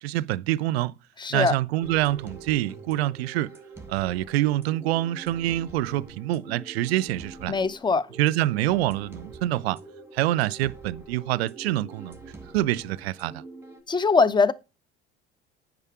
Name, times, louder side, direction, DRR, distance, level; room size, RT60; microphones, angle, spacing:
voice 1, 0.0-0.9 1.3-3.5 3.9-7.5 8.2-9.8 10.1-12.2 12.5-13.4, right 15 dB, 70° right, 0.5 m, -26 dB
voice 2, 1.2-1.5 7.5-8.1 13.9-14.5, left 4 dB, 15° left, 0.6 m, -21 dB
sound 1, 1.8-13.8, right 3 dB, 5° right, 1.8 m, -45 dB
9.7 x 5.0 x 4.7 m
figure-of-eight pair, 60°, 32 cm